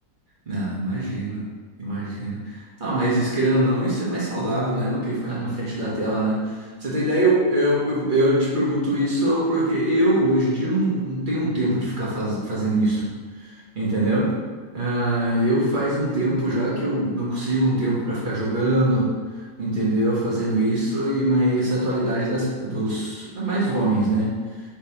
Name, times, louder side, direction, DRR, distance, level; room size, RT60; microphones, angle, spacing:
voice 1, 0.5-1.5 1.8-13.1 13.4-14.3 14.7-19.1 19.6-24.3, right 1 dB, 35° right, -7 dB, 1.1 m, -23 dB
4.9 x 3.5 x 2.8 m, 1.5 s
omnidirectional pair, 1.7 m